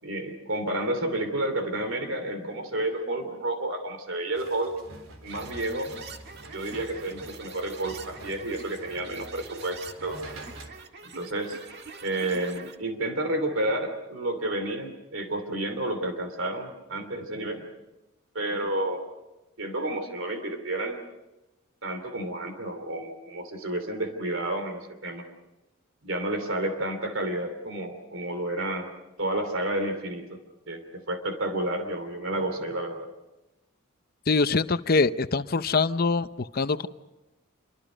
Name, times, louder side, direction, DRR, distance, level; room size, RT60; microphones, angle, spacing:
voice 1, 0.0-4.7 5.2-5.9 6.5-10.2 11.0-11.6 12.0-17.7 18.3-19.0 19.6-21.0 21.8-25.2 26.0-28.9 29.2-30.4 30.7-33.1, right 1 dB, 70° right, 7 dB, 2.9 m, -30 dB
sound 1, 4.3-10.7, right 1 dB, 85° right, 3.8 m, -46 dB
sound 2, 5.3-12.8, right 4 dB, 55° right, 1.9 m, -45 dB
voice 2, 34.3-36.9, left 4 dB, 45° left, 13 dB, 0.7 m, -24 dB
27.5 x 24.5 x 5.2 m, 1.0 s
head